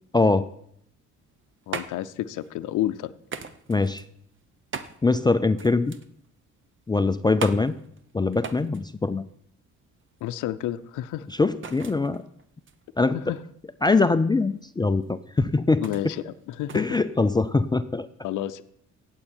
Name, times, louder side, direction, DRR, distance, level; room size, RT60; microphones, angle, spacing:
voice 1, 0.1-0.5 3.7-4.0 5.0-5.9 6.9-7.7 8.1-9.2 11.4-12.2 13.0-13.2 13.8-16.1 16.7-18.1, left 3 dB, 15° left, 11 dB, 0.4 m, -22 dB
sound 1, 1.2-17.8, right 5 dB, 40° right, 0.9 m, -41 dB
voice 2, 1.7-3.1 10.2-11.3 13.1-13.4 15.8-17.0 18.2-18.6, left 13 dB, 85° left, 11 dB, 0.6 m, -30 dB
17.0 x 8.0 x 4.4 m, 0.70 s
cardioid pair, 90°, 30 cm